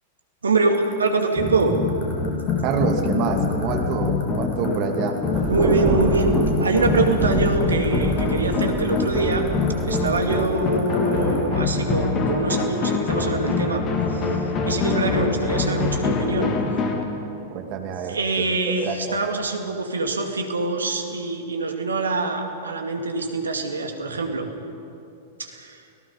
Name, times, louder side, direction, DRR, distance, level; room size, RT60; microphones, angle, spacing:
voice 1, 0.4-1.8 4.6-4.8 5.5-9.5 9.9-13.8 14.1-14.4 14.7-16.5 18.1-24.5 25.4-25.8, right 3 dB, 75° right, 4 dB, 2.3 m, -24 dB
sound 1, 0.7-11.4, left 7 dB, 45° left, 7.4 m, -43 dB
sound 2, 1.4-17.0, left 4 dB, 30° left, 2.5 m, -24 dB
voice 2, 2.6-5.2 15.0-15.2 17.5-19.2, right 6 dB, 40° right, 4 dB, 2.5 m, -27 dB
Thunder, 5.3-10.7, right 4 dB, 25° right, 2.5 m, -28 dB
30.0 x 18.0 x 5.4 m, 2.6 s
figure-of-eight pair, 95°, 0 cm